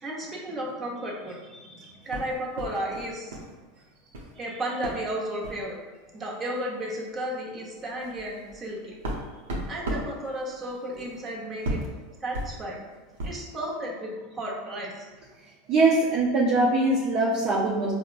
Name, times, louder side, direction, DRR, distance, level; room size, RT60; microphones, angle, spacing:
voice 1, 0.0-3.4 4.3-5.8 6.1-9.0 9.7-11.8 12.2-12.8 13.2-15.1, right 1 dB, 25° right, -3 dB, 0.8 m, -33 dB
sound 1, 2.1-3.5 3.8-4.3 4.8-5.0 5.4-5.7 6.5-6.6 7.0-7.1 7.6-13.5, right 1 dB, 85° right, 0.7 m, -36 dB
voice 2, 15.7-17.9, right 2 dB, 50° right, -4 dB, 0.5 m, -22 dB
4.2 x 2.1 x 2.4 m, 1.3 s
hypercardioid pair, 110°, 0 cm